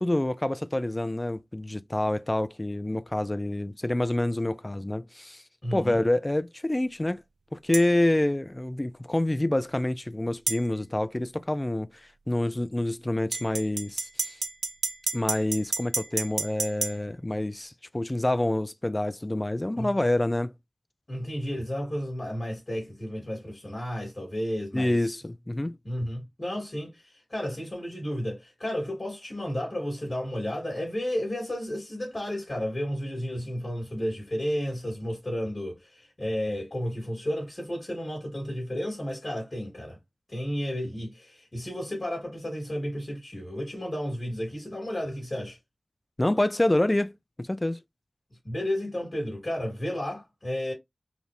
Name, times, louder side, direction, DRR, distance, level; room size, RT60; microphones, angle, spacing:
voice 1, 0.0-5.4 5.7-7.2 7.5-11.9 12.3-14.4 15.1-20.5 24.7-25.8 46.2-47.8, left 1 dB, 20° left, 0.3 m, -27 dB
voice 2, 5.6-6.0 19.8-19.9 21.1-25.0 25.8-40.0 40.3-45.6 48.4-50.7, equal, 40° left, 2.7 m, -32 dB
sound 1, 7.7-7.9 10.5-10.6 13.3-17.0, right 3 dB, 80° right, 0.6 m, -30 dB
4.9 x 2.6 x 3.4 m
wide cardioid pair, 70°, 0 cm